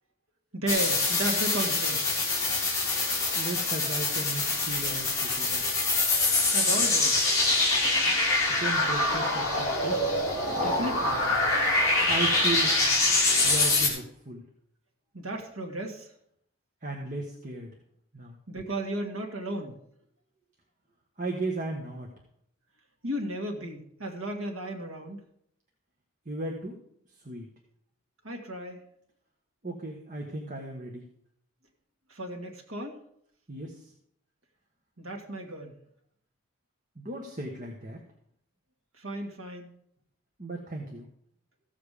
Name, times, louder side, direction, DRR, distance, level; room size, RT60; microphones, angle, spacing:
voice 1, 0.5-2.2 6.5-7.3 10.6-11.2 15.1-16.1 18.5-19.8 23.0-25.2 28.2-28.8 32.1-33.0 35.0-35.8 39.0-39.7, right 1 dB, 80° right, 2 dB, 1.8 m, -34 dB
sound 1, 0.7-13.9, left 2 dB, 15° left, 3.2 m, -25 dB
voice 2, 3.3-5.7 8.5-10.0 12.1-12.8 13.4-14.4 16.8-17.7 18.1-18.4 21.2-22.1 26.3-26.8 27.2-27.5 29.6-31.0 33.5-33.9 37.0-38.0 40.4-41.1, right 2 dB, 35° right, 1 dB, 1.3 m, -36 dB
15.0 x 7.2 x 5.0 m, 0.71 s
head